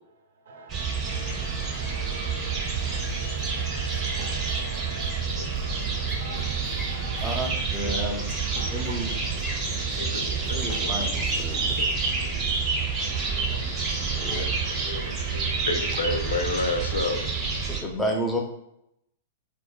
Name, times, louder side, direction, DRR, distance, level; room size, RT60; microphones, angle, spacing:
voice 1, 0.4-5.6 6.2-7.4 8.9-9.0 11.5-11.7 12.8-13.8 14.2-14.4, right 3 dB, 60° right, 4 dB, 0.5 m, -47 dB
sound 1, 0.7-17.8, right 4 dB, 25° right, 0.7 m, -28 dB
sound 2, 1.1-9.1, equal, 90° left, 1.0 m, -46 dB
sound 3, 3.1-4.8 5.0-11.8, left 3 dB, 55° left, 0.9 m, -43 dB
voice 2, 7.2-8.3 8.7-9.1 10.5-11.7 14.2-14.5 17.7-18.4, equal, 10° left, 0 dB, 0.6 m, -31 dB
voice 3, 7.8-8.5 8.7-8.8 9.7-11.0 11.8-11.9 12.2-12.4 13.5-13.6 14.2-14.3 14.7-17.3, left 3 dB, 70° left, 5 dB, 0.3 m, -32 dB
2.1 x 2.1 x 3.1 m, 0.81 s
figure-of-eight pair, 105°, 0 cm